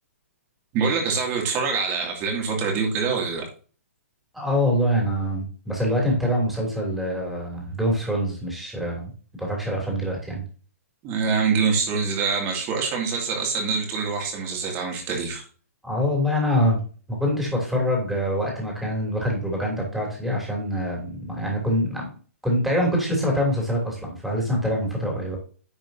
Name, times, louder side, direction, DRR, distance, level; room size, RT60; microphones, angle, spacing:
voice 1, 0.7-3.5 11.0-15.4, right 5 dB, 30° right, 1 dB, 2.6 m, -25 dB
voice 2, 4.3-9.1 9.4-10.4 15.8-16.8 17.1-22.1 22.4-25.4, equal, ahead, -2 dB, 3.1 m, -25 dB
10.0 x 5.2 x 2.8 m, 0.39 s
hypercardioid pair, 140°, 8 cm